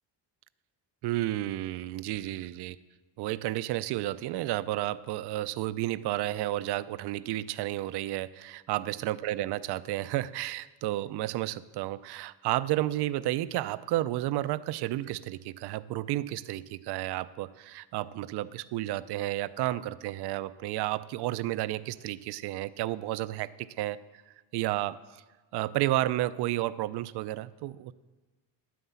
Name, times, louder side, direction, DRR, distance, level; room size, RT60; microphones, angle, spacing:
voice 1, 1.0-2.8 3.2-24.0 24.5-25.2 25.5-27.9, right 15 dB, 60° right, 16 dB, 0.5 m, -32 dB
11.0 x 9.4 x 8.1 m, 1.3 s
cardioid pair, 170°, 45 cm